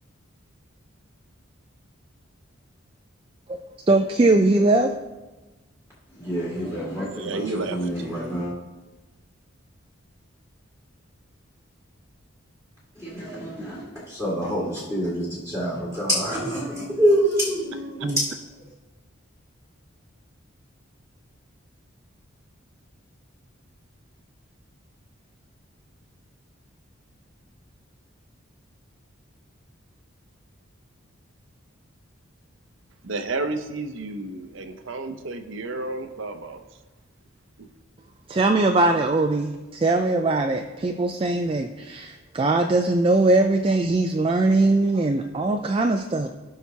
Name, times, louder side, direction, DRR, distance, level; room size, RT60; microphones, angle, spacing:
voice 1, 3.9-4.9 18.0-18.2 38.3-46.3, right 2 dB, 25° right, 4 dB, 0.3 m, -21 dB
voice 2, 6.2-8.5 13.0-18.4, equal, 15° left, -7 dB, 1.9 m, -26 dB
voice 3, 7.1-7.9 18.0-18.1 33.0-36.6 37.6-37.7, right 3 dB, 65° right, 8 dB, 0.7 m, -31 dB
16.0 x 5.7 x 2.8 m, 1.1 s
head